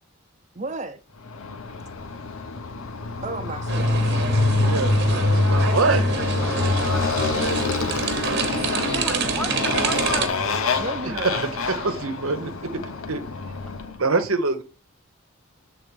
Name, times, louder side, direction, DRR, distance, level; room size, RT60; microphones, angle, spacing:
voice 1, 0.5-1.0 3.2-4.0 6.2-6.3 10.8-11.3, right 2 dB, 35° right, 0.8 m, -33 dB
Motorcycle, 1.3-14.0, left 3 dB, 80° left, 0.9 m, -25 dB
sound 1, 3.7-10.3, right 4 dB, 50° right, 1.1 m, -27 dB
voice 2, 4.6-6.1 11.1-12.5 13.1-13.2 14.0-14.6, right 3 dB, 80° right, 1.0 m, -25 dB
voice 3, 6.4-6.9 8.9-10.8 11.3-11.7 13.7-14.0, left 1 dB, 5° left, 0.4 m, -36 dB
7.3 x 3.7 x 5.2 m
head